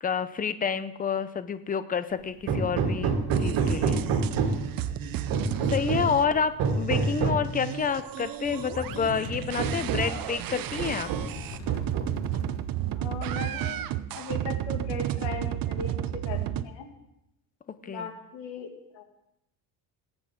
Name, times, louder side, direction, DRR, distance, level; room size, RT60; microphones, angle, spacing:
voice 1, 0.0-3.1 3.4-4.0 5.6-11.1 17.8-18.1, left 6 dB, 20° left, 13 dB, 0.6 m, -29 dB
Hammer, 2.5-4.8 5.3-6.2 6.6-7.5 8.5-8.6 9.1-9.2 9.6-10.2 10.8-11.4 11.7-12.3, right 4 dB, 65° right, 2.1 m, -27 dB
sound 1, 3.3-6.2 6.6-16.6, right 13 dB, 45° right, 0.7 m, -33 dB
sound 2, 4.8-6.5 8.4-9.8 11.3-12.9, left 1 dB, 35° left, 2.2 m, -41 dB
voice 2, 5.9-6.4 12.9-13.9 14.2-16.9 17.8-19.0, left 4 dB, 70° left, 4 dB, 2.2 m, -38 dB
18.0 x 8.8 x 3.7 m, 0.84 s
cardioid pair, 105°, 47 cm